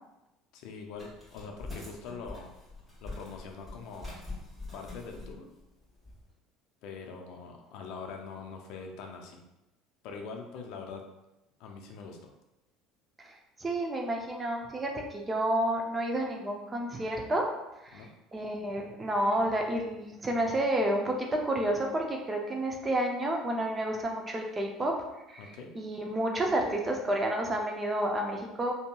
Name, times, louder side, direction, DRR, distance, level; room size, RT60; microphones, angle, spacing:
voice 1, 0.5-2.5 3.0-4.2 4.7-5.5 6.8-9.4 10.0-11.0 11.6-12.3 17.9-18.1 25.4-25.7, left 5 dB, 70° left, 2 dB, 0.4 m, -43 dB
sound 1, 0.9-6.2, left 2 dB, ahead, 1.4 m, -44 dB
voice 2, 13.2-17.5 17.8-28.7, right 1 dB, 20° right, 1 dB, 0.5 m, -30 dB
2.8 x 2.7 x 2.2 m, 0.93 s
supercardioid pair, 115°, 0 cm